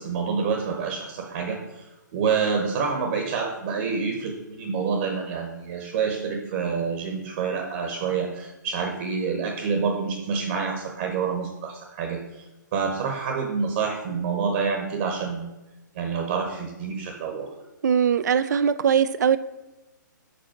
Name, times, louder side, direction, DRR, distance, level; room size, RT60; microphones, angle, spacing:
voice 1, 0.0-1.8 2.1-12.4 12.7-15.5 15.9-17.5, right 5 dB, 40° right, 1.0 m, -27 dB
voice 2, 17.8-19.4, right 7 dB, 60° right, 0.4 m, -21 dB
5.3 x 4.2 x 5.8 m
hypercardioid pair, 155°, 11 cm